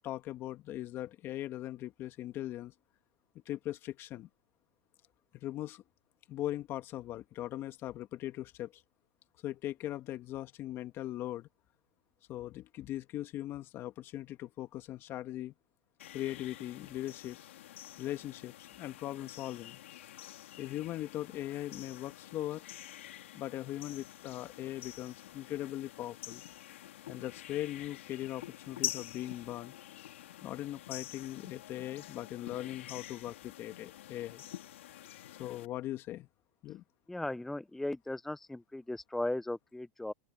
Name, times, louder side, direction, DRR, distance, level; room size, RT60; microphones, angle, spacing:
voice 1, 0.0-2.7 3.5-4.3 5.3-5.8 6.3-8.8 9.4-11.5 12.3-15.5 16.1-17.4 18.0-19.8 20.6-22.7 23.3-26.4 27.1-29.7 30.4-34.4 34.9-36.3 36.6-36.8, left 14 dB, 35° left, 1.8 m, -40 dB
sound 1, 16.0-35.7, left 13 dB, 85° left, 3.4 m, -47 dB
voice 2, 37.1-40.1, left 1 dB, 5° left, 0.5 m, -37 dB
open air
supercardioid pair, 135°, 7 cm